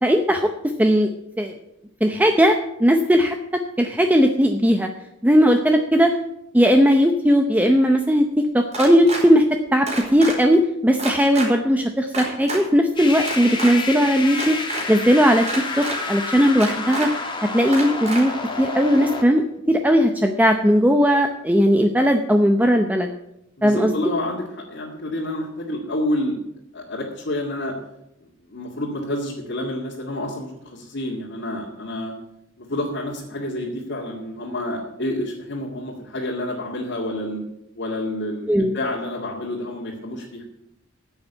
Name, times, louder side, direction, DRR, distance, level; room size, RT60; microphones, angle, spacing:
voice 1, 0.0-0.5 0.8-1.1 1.4-1.5 2.0-4.9 5.2-6.1 6.5-9.4 9.7-14.6 14.9-15.5 15.8-17.1 17.5-23.1 23.6-23.9 38.5-38.7, equal, 10° right, 5 dB, 0.7 m, -18 dB
sound 1, 8.7-9.2 9.9-10.4 11.0-11.5 12.1-12.6 13.2-13.7 14.3-14.8 15.5-16.0 16.6-17.1 17.7-18.2, right 2 dB, 35° right, 4.5 m, -28 dB
sound 2, 13.0-19.2, left 3 dB, 25° left, 1.7 m, -29 dB
voice 2, 23.6-26.4 26.7-27.7 28.2-32.1 32.6-37.4 37.8-40.4, left 1 dB, 60° left, -3 dB, 2.1 m, -29 dB
10.0 x 8.0 x 8.2 m, 0.85 s
head